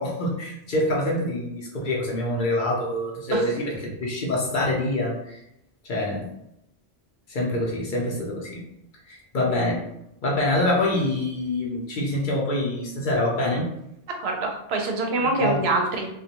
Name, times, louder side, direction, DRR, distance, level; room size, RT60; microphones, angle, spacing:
voice 1, 0.0-3.7 4.0-5.4 5.8-6.3 7.3-8.6 9.1-9.8 10.2-13.7 15.4-15.6, left 1 dB, 55° left, -3 dB, 0.7 m, -25 dB
voice 2, 14.2-16.1, right 3 dB, 80° right, 2 dB, 0.8 m, -25 dB
2.3 x 2.2 x 2.8 m, 0.80 s
omnidirectional pair, 1.1 m